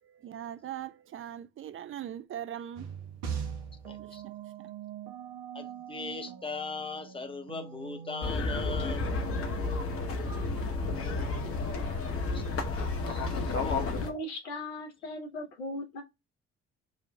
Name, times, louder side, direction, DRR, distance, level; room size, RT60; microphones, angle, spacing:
voice 1, 0.0-2.9 4.0-4.3 4.6-4.7, right 10 dB, 40° right, 0.5 m, -41 dB
sound 1, 2.8-11.5, right 7 dB, 75° right, 1.0 m, -42 dB
voice 2, 3.8-4.2 5.5-9.2 12.3-12.7 13.1-13.8, left 4 dB, 15° left, 0.8 m, -40 dB
sound 2, 8.2-14.1, left 3 dB, 45° left, 1.0 m, -31 dB
voice 3, 14.0-16.0, left 1 dB, 80° left, 1.1 m, -38 dB
6.3 x 2.4 x 2.2 m
hypercardioid pair, 50°, 32 cm